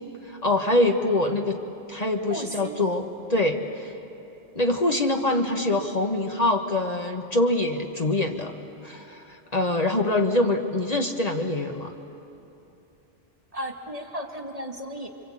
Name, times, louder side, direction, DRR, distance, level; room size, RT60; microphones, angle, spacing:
voice 1, 0.3-1.6 1.9-3.9 4.5-8.6 8.8-11.9, left 2 dB, 40° left, 3 dB, 1.5 m, -24 dB
voice 2, 2.3-2.8 13.5-15.1, right 1 dB, 35° right, 3 dB, 1.9 m, -35 dB
27.5 x 24.5 x 8.6 m, 2.8 s
omnidirectional pair, 1.1 m